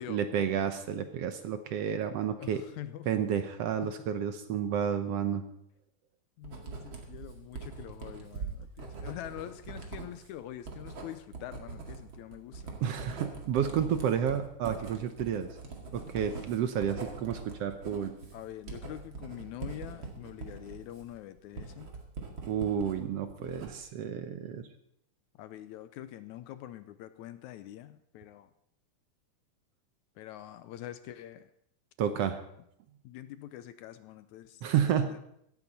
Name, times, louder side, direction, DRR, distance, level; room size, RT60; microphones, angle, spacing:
voice 1, 0.0-2.6 3.1-5.5 12.8-15.5 15.9-18.1 22.5-24.7 32.0-32.4 34.6-35.1, right 8 dB, 75° right, 8 dB, 1.5 m, -31 dB
voice 2, 2.4-3.1 3.8-3.9 6.4-12.8 18.3-21.9 25.4-28.5 30.2-31.5 33.0-34.6 35.0-35.2, left 12 dB, 75° left, 12 dB, 1.8 m, -45 dB
Writing, 6.4-23.0 23.3-24.0, right 4 dB, 40° right, 2.5 m, -43 dB
16.5 x 14.0 x 4.1 m, 0.75 s
omnidirectional pair, 3.7 m